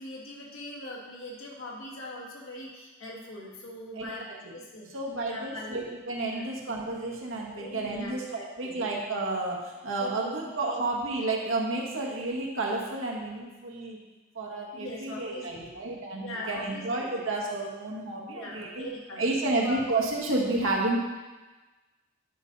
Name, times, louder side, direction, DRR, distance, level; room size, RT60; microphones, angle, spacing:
voice 1, 0.0-4.3 4.5-4.9 5.2-5.8 6.2-6.5 7.5-8.8 10.0-10.8 14.7-15.8 16.1-17.2 18.3-19.8, left 1 dB, 80° left, -3 dB, 2.2 m, -41 dB
voice 2, 4.9-8.2 8.6-14.0 14.3-18.9 19.2-21.0, right 2 dB, 70° right, -2 dB, 1.6 m, -31 dB
10.0 x 5.4 x 4.0 m, 1.2 s
head